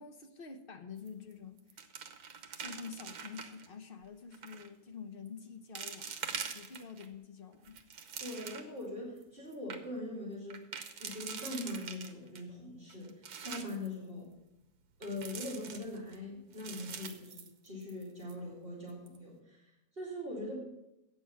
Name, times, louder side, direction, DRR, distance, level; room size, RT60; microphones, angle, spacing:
voice 1, 0.0-1.6 2.6-6.2 6.5-7.8, left 5 dB, 45° left, 6 dB, 0.8 m, -47 dB
sound 1, 1.0-1.3 1.6-3.7 4.3-4.7 5.3-5.4 5.8-7.1 7.5-8.8 9.2-9.3 9.5-9.8 10.5-12.4 12.9-13.9 15.0-16.2 16.5-18.0 18.3-18.4 18.9-19.2, right 6 dB, 70° right, 1.4 m, -44 dB
voice 2, 8.2-10.7 11.0-14.3 15.0-20.6, left 1 dB, 35° right, -4 dB, 2.8 m, -42 dB
8.5 x 6.8 x 7.4 m, 0.87 s
omnidirectional pair, 1.7 m